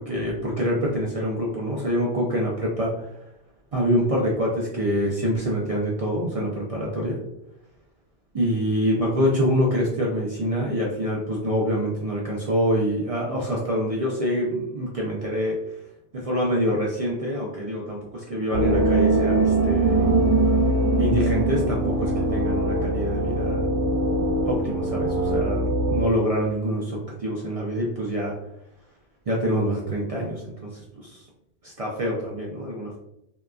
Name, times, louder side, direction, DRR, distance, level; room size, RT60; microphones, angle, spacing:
voice 1, 0.0-3.1 3.7-7.2 8.3-15.6 16.1-20.0 21.0-23.7 24.5-28.3 29.3-31.2 31.6-33.0, equal, 55° right, -3 dB, 0.4 m, -26 dB
sound 1, 18.5-26.0, right 2 dB, 80° right, 0.9 m, -22 dB
2.8 x 2.3 x 2.3 m, 0.83 s
omnidirectional pair, 1.2 m